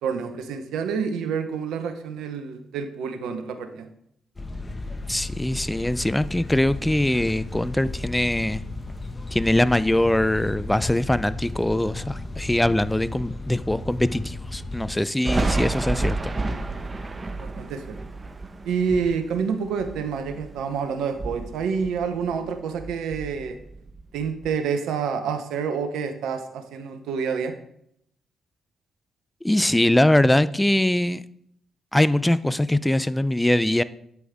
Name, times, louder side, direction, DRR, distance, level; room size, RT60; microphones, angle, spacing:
voice 1, 0.0-3.9 17.3-17.8 18.6-23.6 24.1-27.5, right 6 dB, 80° right, 0.9 m, -28 dB
sound 1, 4.4-15.0, left 2 dB, 30° left, 1.6 m, -35 dB
voice 2, 5.1-8.6 9.3-16.2 29.4-31.2 31.9-33.8, left 1 dB, 10° left, 0.6 m, -22 dB
Thunder, 15.2-20.7 21.0-22.5 22.8-24.5, right 2 dB, 35° right, 1.1 m, -30 dB
11.0 x 8.3 x 3.6 m
hypercardioid pair, 45°, 0 cm